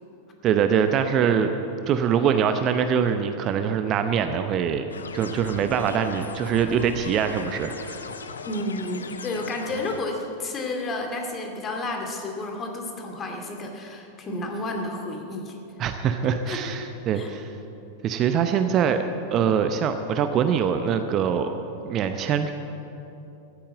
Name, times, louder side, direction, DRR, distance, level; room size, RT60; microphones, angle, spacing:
voice 1, 0.4-1.6 1.9-4.9 5.1-8.1 15.8-17.5 18.0-19.0 19.3-21.5 21.8-22.5, right 7 dB, 35° right, 8 dB, 0.7 m, -23 dB
sound 1, 4.9-10.0, left 5 dB, 70° left, 0.7 m, -38 dB
voice 2, 8.4-15.6 16.5-16.6 17.2-17.3, left 2 dB, 25° left, 2 dB, 2.3 m, -31 dB
14.5 x 8.8 x 8.5 m, 2.9 s
figure-of-eight pair, 90°, 0 cm